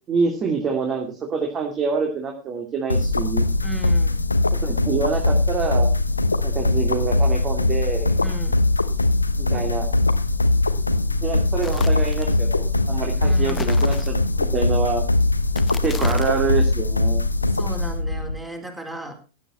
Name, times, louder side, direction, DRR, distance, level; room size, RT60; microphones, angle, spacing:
voice 1, 0.1-3.5 4.5-5.9 6.4-8.1 9.4-9.9 11.2-15.0 15.7-17.2, right 5 dB, 25° right, 2 dB, 2.5 m, -26 dB
sound 1, 2.9-18.4, left 2 dB, 80° left, 0.9 m, -21 dB
voice 2, 3.6-4.2 8.2-8.6 13.2-13.7 17.5-19.1, right 1 dB, 10° right, 3 dB, 4.0 m, -34 dB
sound 2, 11.6-12.3 13.4-14.5 15.5-16.5, left 5 dB, 15° left, 1.0 m, -37 dB
16.0 x 9.8 x 4.3 m, 0.32 s
figure-of-eight pair, 90°, 0 cm